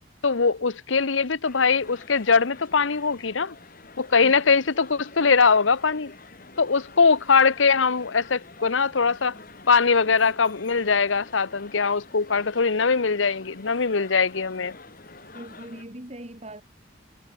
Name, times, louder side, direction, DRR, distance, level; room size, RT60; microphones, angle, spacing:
voice 1, 0.2-3.5 4.0-6.1 6.6-9.4 9.7-14.8, left 5 dB, 85° left, 1.0 m, -21 dB
sound 1, 1.4-15.8, left 3 dB, 45° left, 2.4 m, -47 dB
voice 2, 15.3-16.6, right 1 dB, 35° right, 3.1 m, -40 dB
head